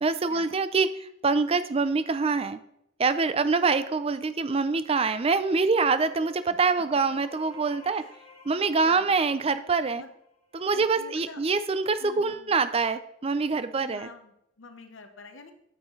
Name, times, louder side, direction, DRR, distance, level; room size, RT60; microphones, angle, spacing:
voice 1, 0.0-2.6 3.0-8.0 8.4-10.0 10.5-14.1, right 4 dB, 30° right, 12 dB, 0.5 m, -25 dB
sound 1, 5.0-10.7, left 3 dB, 35° left, 1.6 m, -53 dB
voice 2, 8.6-9.1 9.9-10.1 10.7-11.4 12.0-12.6 13.8-15.5, left 3 dB, 75° left, 7 dB, 1.0 m, -47 dB
8.6 x 8.1 x 3.2 m, 0.77 s
head